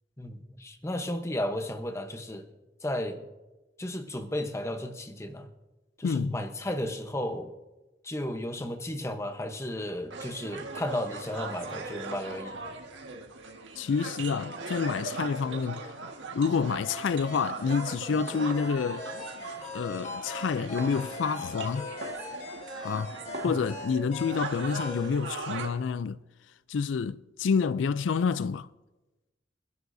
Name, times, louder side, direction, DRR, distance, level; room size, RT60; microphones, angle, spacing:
voice 1, 0.2-2.4 2.8-3.2 3.8-5.5 6.0-7.5 8.0-12.6 23.4-23.6, left 1 dB, 15° left, 0.9 m, -34 dB
voice 2, 6.0-6.4 13.8-19.0 19.7-21.9 22.8-23.1 23.4-26.2 26.7-28.7, left 5 dB, 85° left, 0.4 m, -28 dB
sound 1, 10.1-25.7, right 3 dB, 80° right, 1.7 m, -40 dB
sound 2, 16.8-25.1, left 2 dB, 40° left, 4.1 m, -40 dB
28.0 x 11.0 x 2.7 m
head